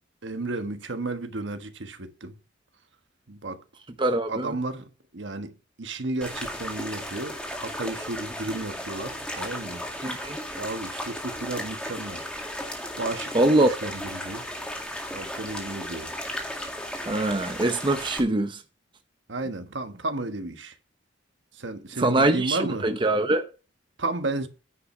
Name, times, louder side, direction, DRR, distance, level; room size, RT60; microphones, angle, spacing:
voice 1, 0.2-2.3 3.3-3.6 4.3-4.9 5.1-5.5 5.8-9.8 10.5-12.2 13.0-13.3 13.8-14.4 15.1-16.1 19.3-20.7 21.6-22.8 24.0-24.5, right 2 dB, 75° right, 1.3 m, -32 dB
voice 2, 4.0-4.5 10.0-10.4 13.3-13.7 17.1-18.6 22.0-23.5, right 2 dB, 25° right, 0.7 m, -23 dB
sound 1, 6.2-18.2, equal, 5° left, 2.0 m, -35 dB
9.9 x 5.6 x 5.5 m
head